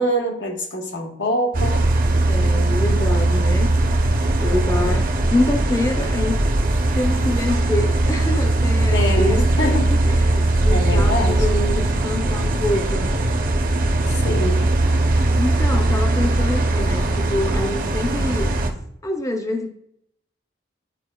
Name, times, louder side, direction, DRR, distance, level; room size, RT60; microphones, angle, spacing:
voice 1, 0.0-1.9 4.4-5.0 8.9-9.9 10.7-11.5 14.0-14.7, equal, 85° left, 2 dB, 1.1 m, -25 dB
sound 1, 1.5-18.7, right 2 dB, 50° right, 0.6 m, -19 dB
voice 2, 2.3-3.7 4.4-6.5 6.9-13.2 15.1-18.5 19.0-19.7, left 1 dB, 20° left, 4 dB, 0.5 m, -26 dB
9.8 x 4.3 x 2.2 m, 0.72 s
head